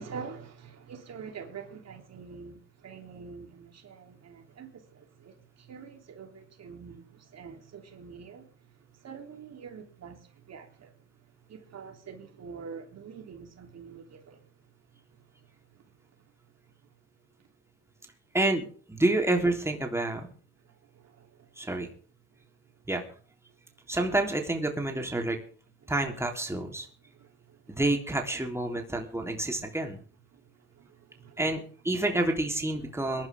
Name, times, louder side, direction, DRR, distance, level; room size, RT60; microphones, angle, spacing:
voice 1, 0.0-8.5 9.0-10.9 11.5-14.4 20.9-21.3 25.8-25.9 27.1-27.8 30.3-31.4, right 6 dB, 60° right, 3.4 m, -46 dB
voice 2, 18.3-20.3 21.6-21.9 22.9-23.0 23.9-25.4 25.9-26.9 27.7-30.0 31.4-33.3, right 2 dB, 10° right, 3.4 m, -28 dB
22.0 x 11.5 x 3.6 m
cardioid pair, 90°, 30 cm